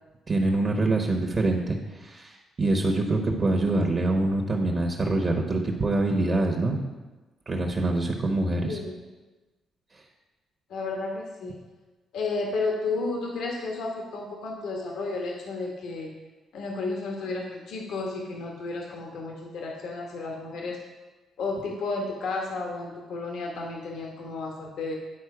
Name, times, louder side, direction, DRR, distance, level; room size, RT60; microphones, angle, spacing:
voice 1, 0.3-6.8 7.5-8.8, right 2 dB, 35° right, 1 dB, 0.9 m, -25 dB
voice 2, 8.6-9.0 10.7-11.6 12.1-16.1 16.5-20.8 21.4-25.0, left 3 dB, 80° left, 0 dB, 1.1 m, -32 dB
9.7 x 4.1 x 4.8 m, 1.2 s
cardioid pair, 90°, 0 cm